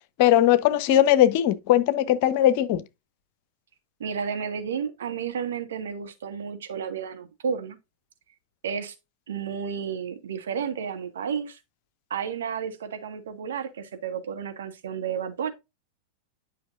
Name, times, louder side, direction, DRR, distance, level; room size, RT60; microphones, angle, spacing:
voice 1, 0.2-2.8, left 12 dB, 45° left, 0.8 m, -19 dB
voice 2, 4.0-7.8 8.6-8.9 9.3-11.6 12.1-15.5, right 7 dB, 65° right, 1.6 m, -32 dB
11.0 x 5.8 x 2.5 m
figure-of-eight pair, 90°, 0 cm